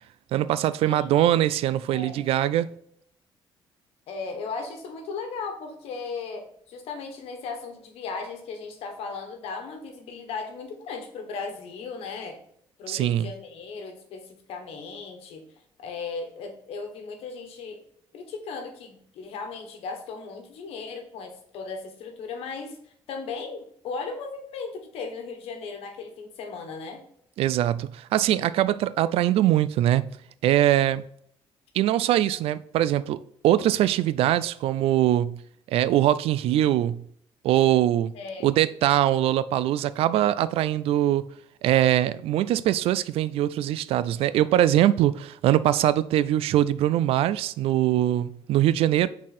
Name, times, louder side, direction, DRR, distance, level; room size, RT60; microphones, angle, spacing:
voice 1, 0.3-2.7 12.9-13.3 27.4-30.1 30.4-31.0 31.7-35.4 35.7-37.0 37.4-38.1 38.4-41.3 41.6-49.1, right 12 dB, 75° right, 0.3 m, -22 dB
voice 2, 0.8-1.2 1.9-2.2 4.1-12.4 12.8-15.4 15.8-17.8 18.1-22.8 23.1-27.0 38.1-38.5, left 4 dB, 85° left, 1.3 m, -36 dB
6.2 x 4.1 x 4.2 m
cardioid pair, 135°, 10 cm